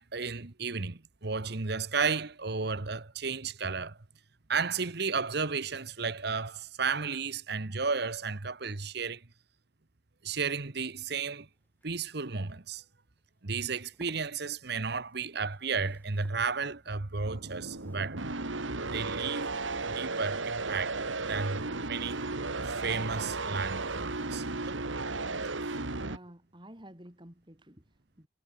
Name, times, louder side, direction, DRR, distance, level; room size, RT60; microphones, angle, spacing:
voice 1, 0.0-4.0 4.5-9.2 10.2-11.5 11.8-12.8 13.4-18.2 18.9-19.5 19.9-21.0 21.3-22.2 22.8-24.8, right 5 dB, 55° right, 1.2 m, -33 dB
sound 1, 11.4-20.0 21.1-25.0 26.6-26.9 27.2-27.3, equal, 10° left, 7.1 m, -63 dB
sound 2, 17.2-26.2, right 3 dB, 80° right, 2.3 m, -35 dB
voice 2, 26.0-28.3, right 1 dB, 25° right, 4.0 m, -51 dB
head